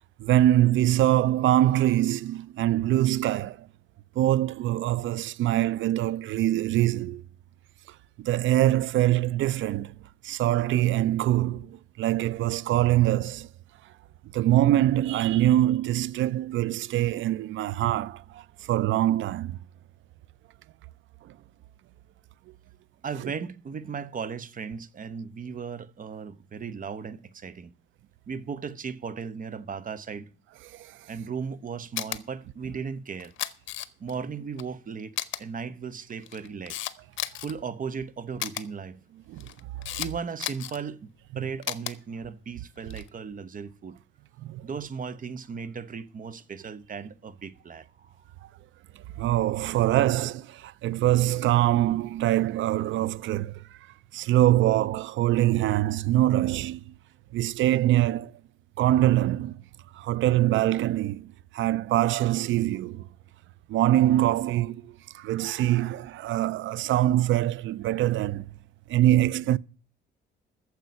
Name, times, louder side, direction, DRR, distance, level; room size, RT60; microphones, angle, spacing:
voice 1, 0.2-3.6 4.2-7.2 8.2-9.9 10.2-13.5 14.3-18.4 18.7-19.6 39.3-39.5 44.4-44.6 49.2-53.5 54.1-56.9 57.3-58.3 58.8-59.6 60.0-63.0 63.7-68.4 68.9-69.6, right 14 dB, 75° right, 0.5 m, -24 dB
voice 2, 23.0-27.7 28.3-30.3 31.1-33.3 34.0-35.1 35.4-36.8 37.4-39.0 40.0-44.0 44.6-48.2, right 6 dB, 45° right, 1.1 m, -36 dB
Camera, 32.0-32.2 33.2-34.1 34.6-34.7 35.2-35.4 36.1-37.5 38.4-38.6 39.4-40.1 40.4-40.8 41.6-41.9 42.8-43.1, left 13 dB, 75° left, 0.9 m, -33 dB
9.6 x 7.4 x 9.3 m
cardioid pair, 90°, 20 cm